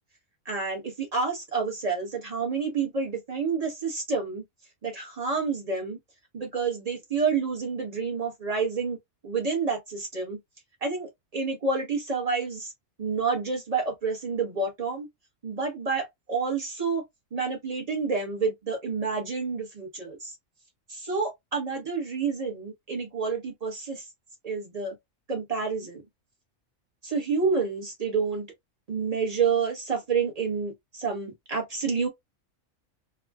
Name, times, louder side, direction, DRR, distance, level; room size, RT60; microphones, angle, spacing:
voice 1, 0.4-4.4 4.8-6.0 6.3-9.0 9.2-10.4 10.8-12.7 13.0-15.1 15.4-17.0 17.3-20.3 20.9-24.1 24.4-24.9 25.3-26.0 27.0-28.5 28.9-32.1, right 5 dB, 30° right, 1.2 m, -29 dB
3.6 x 2.3 x 2.3 m
omnidirectional pair, 1.4 m